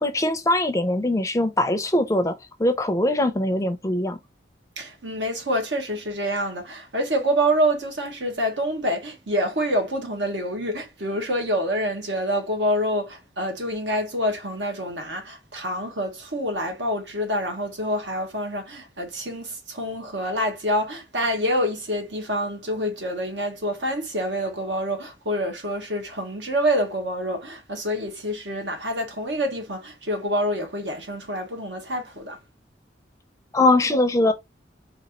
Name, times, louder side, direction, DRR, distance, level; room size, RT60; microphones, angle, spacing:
voice 1, 0.0-4.2 33.5-34.3, left 1 dB, 15° left, 0.4 m, -22 dB
voice 2, 4.8-32.4, equal, 80° right, 1.2 m, -27 dB
4.2 x 2.7 x 2.9 m
head